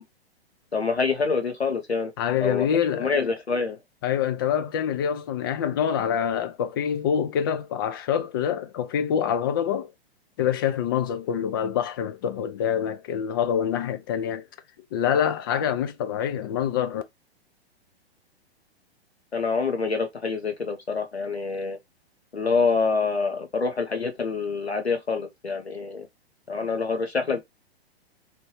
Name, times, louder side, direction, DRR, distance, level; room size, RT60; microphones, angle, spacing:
voice 1, 0.7-2.1 2.4-2.7 2.9-3.8 19.3-21.8 22.3-26.1 26.5-27.4, left 4 dB, 85° left, 1.0 m, -26 dB
voice 2, 2.2-3.1 4.0-9.9 10.4-14.4 14.9-17.0, left 8 dB, 25° left, 0.3 m, -26 dB
3.0 x 2.7 x 3.1 m
figure-of-eight pair, 110°, 31 cm